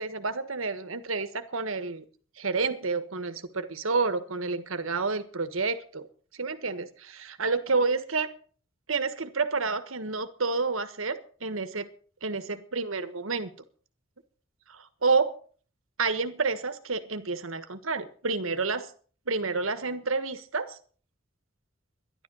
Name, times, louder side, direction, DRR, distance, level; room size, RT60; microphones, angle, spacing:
voice 1, 0.0-2.0 2.4-6.1 6.3-8.3 8.9-11.9 12.2-13.5 14.7-15.3 16.0-18.9 19.3-20.8, right 4 dB, 90° right, 11 dB, 1.5 m, -29 dB
12.5 x 11.5 x 6.4 m, 0.43 s
head